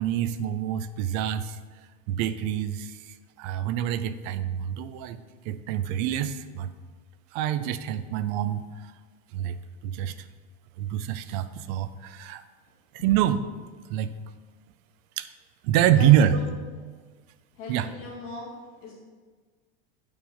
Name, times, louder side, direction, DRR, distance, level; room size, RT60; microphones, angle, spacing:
voice 1, 0.0-1.6 2.1-3.0 3.4-5.2 5.5-6.7 7.3-8.6 9.3-9.6 9.8-10.1 10.8-12.4 12.9-13.4 13.9-14.1 15.2-15.3 15.6-16.4 17.7-17.9, right 10 dB, 40° right, 13 dB, 0.4 m, -25 dB
voice 2, 17.6-18.5 18.8-18.9, left 3 dB, 40° left, -4 dB, 2.1 m, -40 dB
8.6 x 4.9 x 5.1 m, 1.4 s
supercardioid pair, 160°, 33 cm